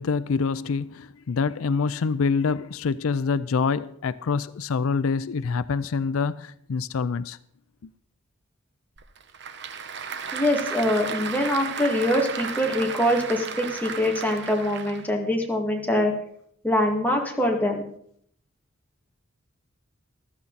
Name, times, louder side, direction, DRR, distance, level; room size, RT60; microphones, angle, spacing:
voice 1, 0.0-7.4 7.8-7.9, left 5 dB, 85° left, 0.5 m, -26 dB
Applause / Crowd, 9.0-15.1, right 6 dB, 55° right, 1.0 m, -34 dB
voice 2, 10.3-16.1 16.6-17.8, left 1 dB, 10° left, 2.1 m, -24 dB
14.5 x 13.0 x 4.1 m
head